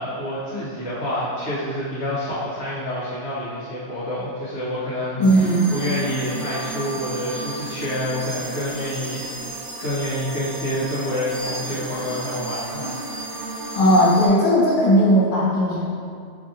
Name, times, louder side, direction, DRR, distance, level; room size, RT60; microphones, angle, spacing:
voice 1, 0.0-5.5 5.7-13.0, left 1 dB, 65° left, -11 dB, 0.9 m, -28 dB
voice 2, 5.2-5.8 12.8-12.9 13.7-15.9, equal, 45° left, -6 dB, 0.5 m, -17 dB
sound 1, 5.2-14.3, right 2 dB, 75° right, 0.9 m, -33 dB
2.7 x 2.4 x 2.6 m, 2.2 s
omnidirectional pair, 1.2 m